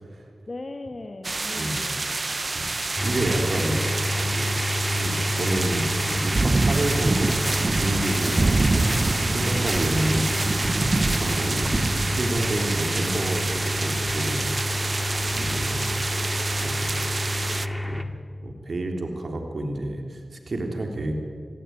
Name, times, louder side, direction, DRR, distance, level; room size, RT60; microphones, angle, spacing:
voice 1, 0.5-2.0 3.7-3.8 9.9-10.3 15.3-15.7, left 2 dB, 45° left, 7 dB, 2.0 m, -38 dB
sound 1, 1.2-17.7, right 3 dB, 45° right, 0.8 m, -26 dB
voice 2, 1.5-1.8 2.5-2.6 3.0-3.8 4.2-4.5 4.9-7.3 7.8-10.3 11.0-11.6 12.0-14.5 15.3-16.0 16.6-16.9 17.9-18.1 18.4-21.1, right 1 dB, 60° right, 3 dB, 3.4 m, -29 dB
sound 2, 3.0-18.0, left 1 dB, 5° left, 2.2 m, -29 dB
sound 3, 6.7-9.3 9.6-10.7 11.1-11.4, right 1 dB, 15° right, 4.2 m, -36 dB
27.5 x 15.5 x 9.5 m, 2.1 s
cardioid pair, 45°, 0 cm